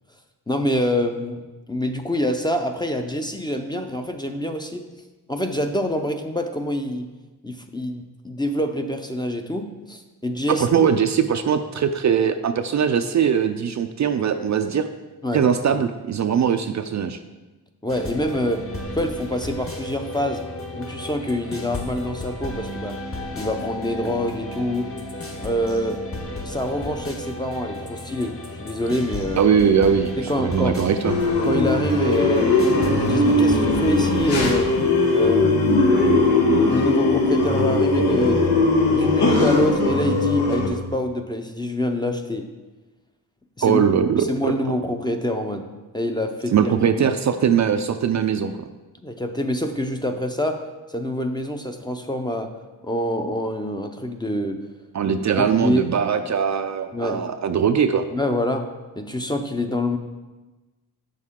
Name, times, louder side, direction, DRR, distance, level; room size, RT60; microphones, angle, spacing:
voice 1, 0.5-4.8 5.3-7.1 7.4-10.7 15.2-15.8 17.8-18.7 18.9-20.4 20.8-23.0 23.3-24.9 25.4-26.0 26.4-29.4 30.2-30.8 31.4-34.7 35.1-38.4 38.9-42.5 43.6-43.8 44.2-45.7 45.9-46.7 49.0-50.6 50.9-52.5 52.8-54.6 55.1-55.9 56.9-57.3 58.1-58.7 59.0-60.0, left 1 dB, 10° left, 5 dB, 0.6 m, -26 dB
voice 2, 10.5-14.9 15.3-17.2 29.4-31.2 43.6-44.5 46.5-48.5 54.9-58.0, right 7 dB, 45° right, 8 dB, 0.4 m, -21 dB
sound 1, 17.9-34.6, left 1 dB, 35° left, 1.1 m, -33 dB
sound 2, 31.0-40.7, left 2 dB, 85° left, 1.4 m, -19 dB
7.6 x 6.5 x 3.7 m, 1.2 s
cardioid pair, 90°, 39 cm